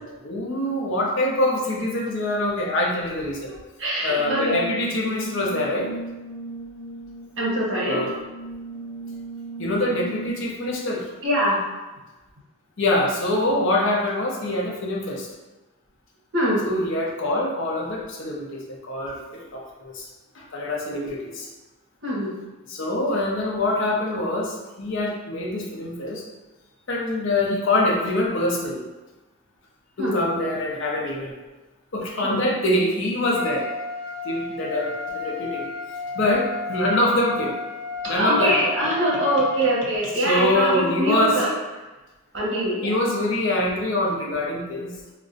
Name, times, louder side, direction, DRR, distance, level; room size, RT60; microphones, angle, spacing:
voice 1, 0.0-3.5 4.0-5.9 7.8-8.1 9.6-11.0 12.8-15.3 16.6-20.1 20.4-21.5 22.7-26.2 26.9-28.8 30.0-31.3 31.9-33.7 34.2-35.6 36.1-37.5 38.1-38.8 40.2-41.4 42.8-44.9, left 1 dB, 60° left, -2 dB, 0.6 m, -24 dB
voice 2, 3.5-4.6 7.4-8.0 11.2-11.6 16.3-16.6 22.0-22.3 30.0-30.2 32.2-32.4 38.2-41.5 42.3-42.9, right 1 dB, 55° right, -4 dB, 0.9 m, -23 dB
Brass instrument, 4.2-10.6, right 2 dB, 5° left, 1.0 m, -36 dB
Trumpet, 33.2-39.8, left 3 dB, 15° right, 0.4 m, -32 dB
2.4 x 2.2 x 3.8 m, 1.1 s
head